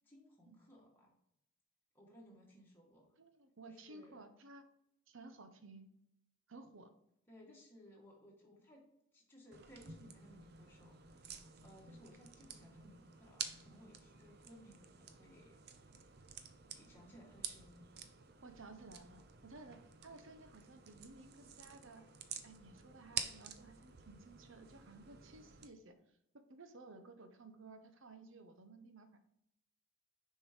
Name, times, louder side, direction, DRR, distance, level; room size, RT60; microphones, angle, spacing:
voice 1, 0.1-1.1 1.9-3.2 3.6-4.2 7.3-8.8 9.1-15.6 16.7-17.9, equal, 10° left, -3 dB, 1.5 m, -61 dB
voice 2, 3.2-4.7 5.1-5.9 6.5-6.9 18.4-22.1 22.4-26.2 26.5-29.2, right 3 dB, 70° right, 8 dB, 0.8 m, -56 dB
sound 1, 9.5-25.7, right 7 dB, 50° right, 0.5 m, -50 dB
6.6 x 4.6 x 5.0 m, 0.78 s
head